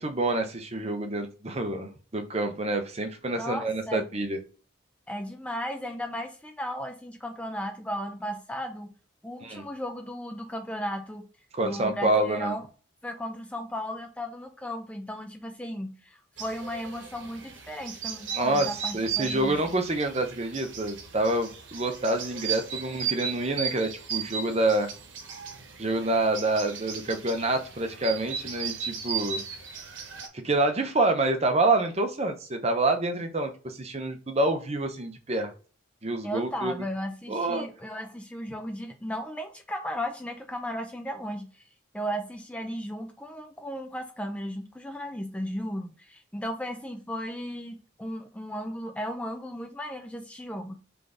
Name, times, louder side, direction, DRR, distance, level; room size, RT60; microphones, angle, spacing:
voice 1, 0.0-4.4 9.4-9.6 11.5-12.5 18.3-18.7 18.9-24.9 25.8-29.4 30.3-35.5 36.0-36.7 37.3-37.7, right 2 dB, 30° right, 0.7 m, -27 dB
voice 2, 3.4-4.1 5.1-8.9 9.2-11.3 11.6-12.6 13.0-19.6 36.2-41.7 41.9-50.8, equal, 5° left, 0.4 m, -35 dB
sound 1, 16.4-30.3, right 7 dB, 70° right, 1.0 m, -36 dB
3.8 x 3.4 x 3.8 m
head